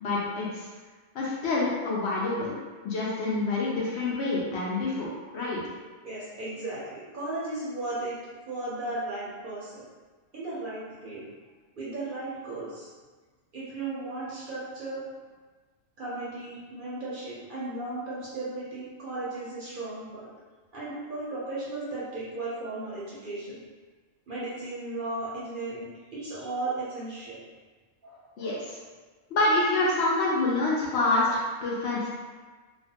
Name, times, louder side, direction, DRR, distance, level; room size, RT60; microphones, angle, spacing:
voice 1, 0.0-0.7 1.1-2.6 2.8-5.6 28.4-28.8 29.3-32.1, left 2 dB, 65° left, -5 dB, 0.8 m, -27 dB
voice 2, 6.0-8.1 8.5-9.8 10.3-11.2 11.8-12.9 13.5-15.0 16.0-20.3 20.7-23.6 24.3-27.4 28.0-28.6, right 2 dB, 55° right, -9 dB, 0.7 m, -35 dB
2.4 x 2.2 x 2.7 m, 1.4 s
omnidirectional pair, 1.3 m